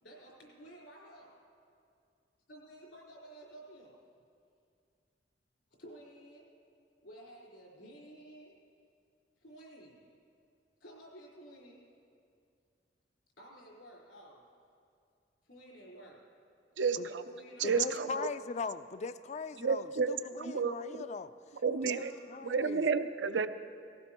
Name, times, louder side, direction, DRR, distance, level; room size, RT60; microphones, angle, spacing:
voice 1, 0.0-1.4 2.5-4.0 5.8-6.5 7.0-8.6 9.4-10.1 10.8-11.8 13.4-14.5 15.4-16.2 17.0-17.9 21.7-22.3, right 1 dB, 90° left, -4 dB, 4.2 m, -53 dB
voice 2, 16.8-17.2 17.6-18.3 19.6-21.0 21.6-22.1 22.4-23.5, right 5 dB, 80° right, 11 dB, 0.5 m, -31 dB
voice 3, 17.6-21.3 21.8-22.8, left 4 dB, 40° left, 13 dB, 0.3 m, -40 dB
18.5 x 15.5 x 3.0 m, 2.4 s
head